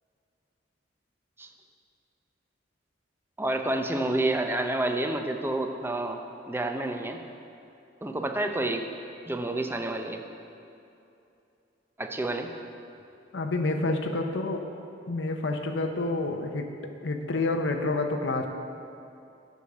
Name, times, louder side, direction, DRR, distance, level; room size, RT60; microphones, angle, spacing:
voice 1, 3.4-6.2 6.5-7.2 8.0-8.8 9.3-10.2 12.0-12.5, right 2 dB, 10° right, 5 dB, 0.6 m, -29 dB
voice 2, 13.3-14.6 15.1-16.7 17.0-18.5, left 2 dB, 75° left, 4 dB, 0.8 m, -28 dB
8.3 x 6.4 x 6.6 m, 2.7 s
head